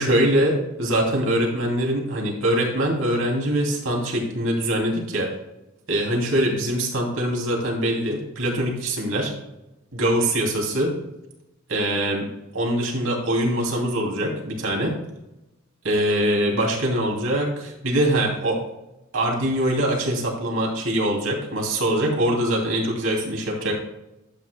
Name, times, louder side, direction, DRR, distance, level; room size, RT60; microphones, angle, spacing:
voice 1, 0.0-5.3 5.9-9.3 9.9-10.9 11.7-12.3 12.5-14.9 15.8-18.6 19.1-23.7, right 1 dB, 75° right, -1 dB, 2.9 m, -23 dB
11.5 x 8.8 x 2.3 m, 0.89 s
head